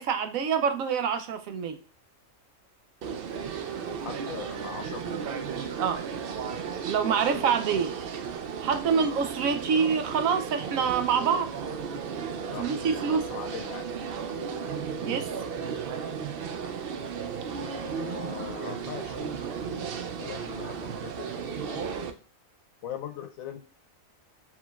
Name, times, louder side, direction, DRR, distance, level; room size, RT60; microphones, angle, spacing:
voice 1, 0.0-1.8 5.8-6.1 6.8-7.9 8.6-11.5 12.6-13.4 15.0-15.3, right 6 dB, 90° right, 1.1 m, -26 dB
sound 1, 3.0-22.1, right 6 dB, 60° right, 0.6 m, -35 dB
voice 2, 4.0-5.3 7.1-7.3 12.5-13.9 17.6-19.3 20.2-21.8 22.8-23.6, left 8 dB, 85° left, 1.1 m, -41 dB
4.6 x 3.8 x 2.3 m
omnidirectional pair, 1.4 m